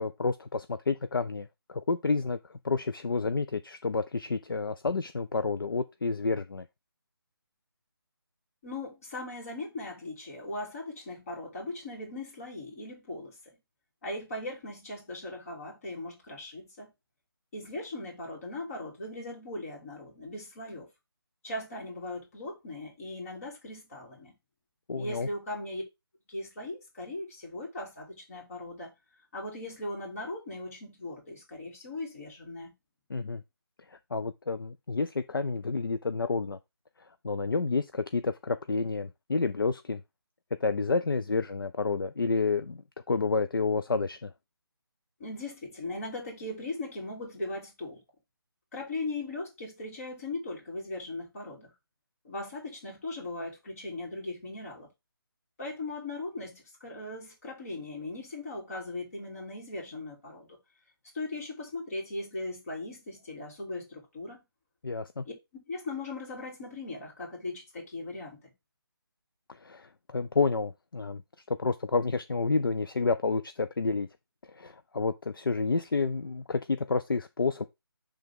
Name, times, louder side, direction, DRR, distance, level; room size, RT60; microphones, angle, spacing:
voice 1, 0.0-6.7 24.9-25.3 33.1-33.4 33.9-36.6 37.0-40.0 40.6-44.3 64.8-65.3 69.5-71.2 71.5-74.1 74.5-77.6, left 4 dB, 60° left, 0.5 m, -30 dB
voice 2, 8.6-13.4 14.0-16.9 17.5-20.9 21.4-24.3 24.9-25.8 26.3-28.9 29.3-32.7 45.2-48.0 48.7-51.7 52.2-54.9 55.6-60.6 61.1-64.4 65.2-65.3 65.7-68.5, left 2 dB, 35° left, 3.3 m, -38 dB
10.0 x 3.5 x 3.7 m
figure-of-eight pair, 155°, 13 cm